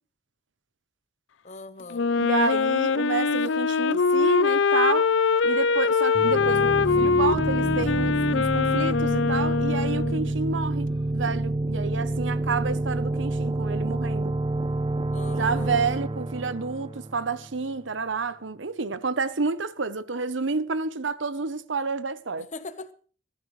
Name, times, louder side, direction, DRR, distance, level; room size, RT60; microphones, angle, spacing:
voice 1, 1.4-2.1 15.1-15.8 22.4-22.9, left 3 dB, 40° left, 1.1 m, -40 dB
Wind instrument woodwind instrument, 1.9-10.3, left 5 dB, 90° left, 0.5 m, -23 dB
voice 2, 2.2-5.1 5.4-14.3 15.3-22.5, right 4 dB, 85° right, 0.9 m, -29 dB
sound 1, 6.1-17.7, right 2 dB, 30° right, 0.6 m, -28 dB
20.5 x 13.5 x 3.2 m
head